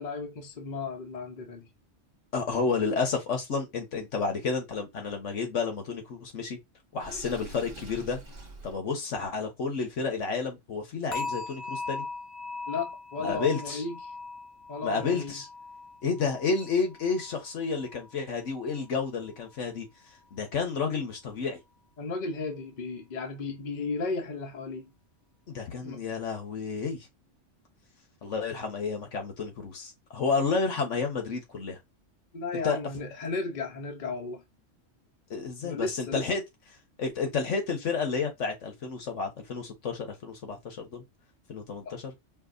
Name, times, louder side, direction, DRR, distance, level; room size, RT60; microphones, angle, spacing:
voice 1, 0.0-1.7 12.7-14.0 14.7-15.3 22.0-24.9 25.8-26.0 32.3-34.4 35.6-36.2, left 3 dB, 40° left, 0.9 m, -34 dB
voice 2, 2.3-6.6 6.9-8.2 8.6-12.0 13.2-13.8 14.8-15.5 16.0-19.9 20.3-21.6 25.5-27.1 28.2-31.8 32.6-32.8 35.3-36.4 37.0-41.0 41.5-42.1, left 5 dB, 75° left, 1.4 m, -31 dB
Water / Sink (filling or washing), 7.0-8.8, right 2 dB, 50° right, 1.3 m, -45 dB
sound 1, 11.1-18.2 18.5-18.9 19.4-19.5, left 3 dB, 25° left, 0.4 m, -40 dB
5.3 x 2.5 x 2.6 m
omnidirectional pair, 1.3 m